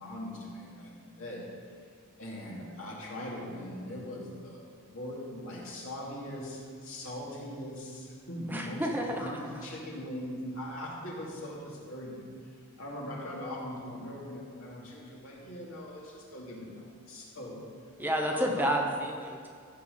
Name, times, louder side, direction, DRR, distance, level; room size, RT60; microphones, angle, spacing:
voice 1, 0.0-1.4 2.2-4.6 4.9-17.6 18.2-18.7, left 1 dB, 65° left, -4 dB, 2.6 m, -40 dB
voice 2, 8.5-9.2 18.0-19.5, equal, 10° right, 1 dB, 0.7 m, -30 dB
14.5 x 5.0 x 6.6 m, 2.1 s
head